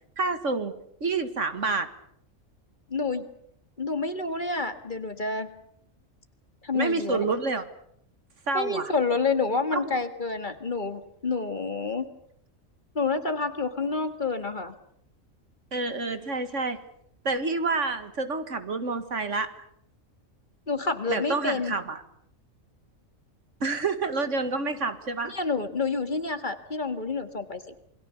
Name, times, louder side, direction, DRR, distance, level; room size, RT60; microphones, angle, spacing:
voice 1, 0.2-0.7 1.0-1.9 6.7-7.6 8.5-8.9 9.7-9.9 15.7-16.8 17.2-19.5 21.1-22.0 23.6-25.3, right 3 dB, 65° right, 10 dB, 2.1 m, -28 dB
voice 2, 2.9-3.3 3.8-5.5 6.6-7.2 8.5-12.1 13.0-14.7 20.7-21.7 25.2-27.7, left 4 dB, 40° left, 9 dB, 1.9 m, -28 dB
28.0 x 22.0 x 7.0 m, 0.71 s
omnidirectional pair, 1.4 m